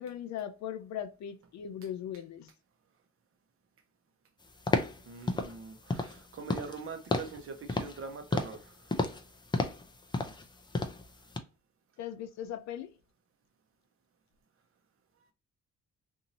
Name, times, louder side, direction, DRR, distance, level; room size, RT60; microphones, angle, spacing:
voice 1, 0.0-2.5 12.0-12.9, left 9 dB, 65° left, 0.5 m, -39 dB
sound 1, 4.7-5.0 5.3-5.5 5.9-6.2 6.5-6.8 7.1-7.4 7.7-8.0 8.3-8.6 8.9-9.2 9.5-9.9 10.1-10.4 10.7-11.0 11.3-11.4, left 3 dB, 15° left, 0.4 m, -31 dB
voice 2, 5.1-8.8, right 5 dB, 45° right, 0.8 m, -43 dB
2.7 x 2.7 x 2.9 m
cardioid pair, 90°, 30 cm